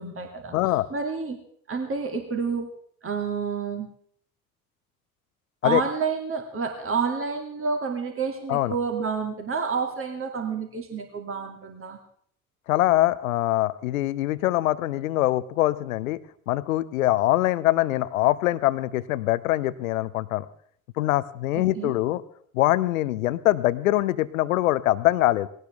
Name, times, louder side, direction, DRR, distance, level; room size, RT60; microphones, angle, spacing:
voice 1, 0.0-0.6 0.9-1.4 1.7-2.7 3.0-3.9 5.6-12.0 21.5-22.0, right 5 dB, 30° right, 3 dB, 2.5 m, -29 dB
voice 2, 0.5-0.9 5.6-5.8 8.5-8.7 12.7-16.2 16.5-20.5 21.0-22.2 22.5-25.5, left 16 dB, 70° left, 18 dB, 0.8 m, -23 dB
20.0 x 17.5 x 3.5 m, 0.63 s
figure-of-eight pair, 50°, 42 cm